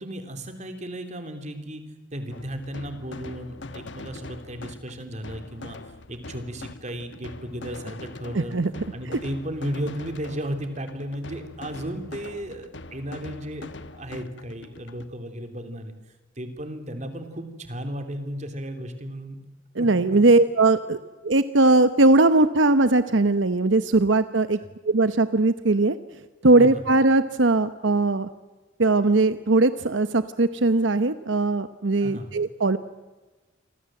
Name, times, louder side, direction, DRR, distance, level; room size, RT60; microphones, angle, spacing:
voice 1, 0.0-1.8 2.1-8.6 8.9-15.9 16.4-19.4 19.8-19.9 26.6-26.8 32.0-32.4, equal, 35° right, 7 dB, 3.2 m, -34 dB
sound 1, 2.3-15.1, left 2 dB, 65° left, 1.2 m, -42 dB
voice 2, 8.3-9.2 19.7-21.0 21.2-24.6 24.8-26.0 26.4-28.3 28.8-32.8, right 2 dB, 75° right, 11 dB, 0.9 m, -20 dB
28.5 x 25.0 x 7.7 m, 1.2 s
head